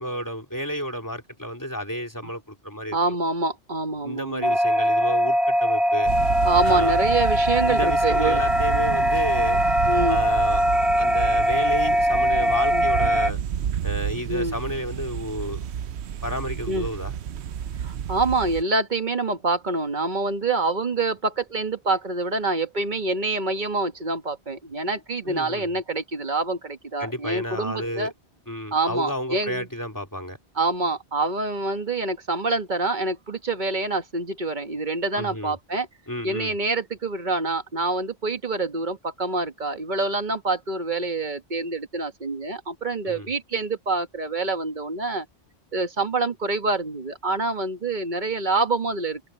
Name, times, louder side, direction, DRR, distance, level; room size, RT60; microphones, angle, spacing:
voice 1, 0.0-3.0 4.0-6.1 6.6-6.9 7.6-9.6 10.1-10.6 11.0-13.4 13.8-15.6 16.2-17.2 25.2-25.7 27.0-28.1 28.5-30.4 35.2-35.5 36.1-36.5 43.0-43.3, equal, 15° left, 3.2 m, -31 dB
voice 2, 2.9-4.6 6.4-8.4 9.8-10.2 12.7-12.9 14.3-14.6 16.7-16.9 17.8-28.1 28.7-29.7 30.5-35.9 36.2-45.2 45.7-49.2, right 3 dB, 45° right, 1.6 m, -26 dB
sound 1, 4.4-13.3, equal, ahead, 0.8 m, -21 dB
sound 2, 6.0-18.6, right 9 dB, 85° right, 1.0 m, -31 dB
omnidirectional pair, 1.1 m